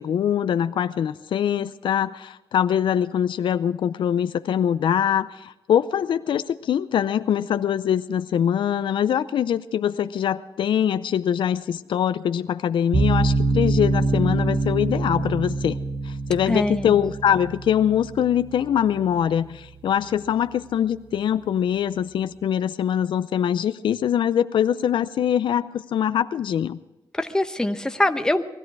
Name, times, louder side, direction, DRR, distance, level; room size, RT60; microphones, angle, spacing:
voice 1, 0.0-15.8 16.0-26.8, left 9 dB, 80° left, 13 dB, 0.6 m, -23 dB
sound 1, 12.9-20.0, right 3 dB, 90° right, 1.5 m, -25 dB
voice 2, 16.5-17.0 27.1-28.4, left 1 dB, 10° left, 8 dB, 0.9 m, -23 dB
20.0 x 14.0 x 4.7 m, 0.98 s
cardioid pair, 105°, 8 cm